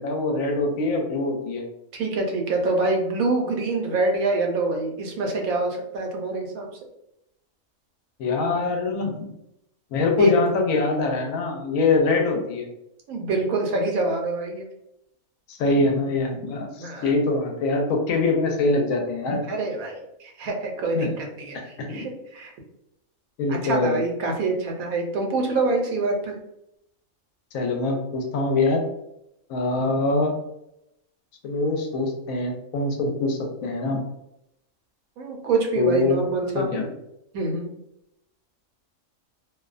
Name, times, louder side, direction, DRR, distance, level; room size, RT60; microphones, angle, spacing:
voice 1, 0.0-1.6 8.2-9.1 9.9-12.7 15.5-19.4 21.0-21.1 21.9-22.1 23.4-24.0 27.5-28.8 29.5-30.3 31.4-34.0 35.8-36.2 36.5-36.9, left 3 dB, 75° left, 2 dB, 1.0 m, -23 dB
voice 2, 1.9-6.7 10.2-10.3 13.1-14.7 16.8-17.1 19.5-22.5 23.5-26.3 35.2-36.7 37.3-37.7, right 3 dB, 80° right, 2 dB, 1.1 m, -25 dB
2.6 x 2.1 x 2.4 m, 0.82 s
omnidirectional pair, 1.5 m